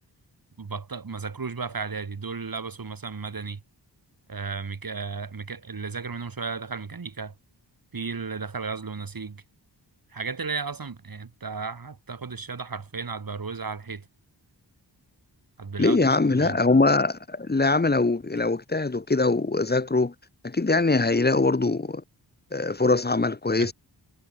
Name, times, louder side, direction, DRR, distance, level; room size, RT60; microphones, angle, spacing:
voice 1, 0.6-3.6 4.3-7.3 7.9-9.4 10.1-14.1 15.6-16.6 23.6-23.7, right 5 dB, 50° right, 3.8 m, -34 dB
voice 2, 15.8-20.1 20.4-22.0 22.5-23.7, left 3 dB, 20° left, 1.2 m, -22 dB
wide cardioid pair, 75°, 43 cm